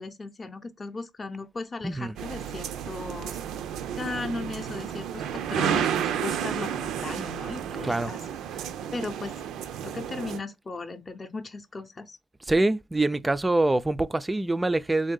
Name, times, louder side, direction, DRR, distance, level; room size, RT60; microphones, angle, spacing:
voice 1, 0.0-3.4 4.0-8.2 8.9-9.4 9.8-12.2, left 3 dB, 30° left, 0.6 m, -37 dB
voice 2, 1.8-2.2 7.8-8.1 8.6-8.7 12.4-15.1, right 2 dB, 15° right, 0.3 m, -25 dB
sound 1, 2.2-10.4, right 9 dB, 85° right, 0.4 m, -31 dB
3.4 x 2.7 x 3.7 m
cardioid pair, 90°, 0 cm